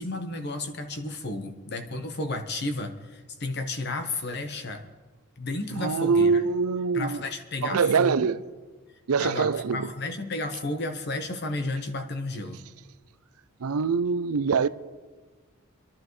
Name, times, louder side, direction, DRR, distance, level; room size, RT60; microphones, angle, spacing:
voice 1, 0.0-4.9 5.4-6.4 6.9-8.2 9.2-12.6, left 2 dB, 50° left, 1.2 m, -32 dB
voice 2, 5.8-7.2 7.6-8.4 9.1-9.9 13.6-14.7, right 5 dB, 85° right, 0.5 m, -24 dB
25.0 x 11.5 x 3.2 m
head